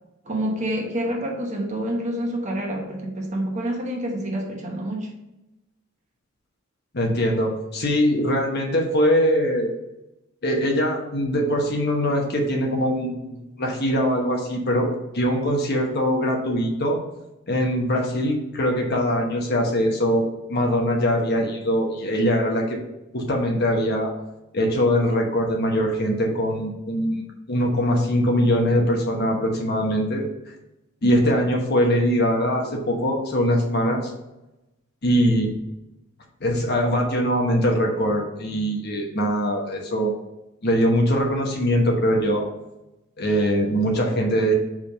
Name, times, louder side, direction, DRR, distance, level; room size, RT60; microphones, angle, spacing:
voice 1, 0.3-5.1, right 1 dB, 35° right, 1 dB, 1.0 m, -27 dB
voice 2, 6.9-9.7 10.4-17.0 17.5-22.8 23.1-24.1 24.5-30.3 31.0-34.1 35.0-35.5 36.4-40.1 40.6-42.5 43.2-44.5, equal, 50° left, 1 dB, 1.0 m, -22 dB
5.0 x 3.5 x 5.4 m, 0.95 s
head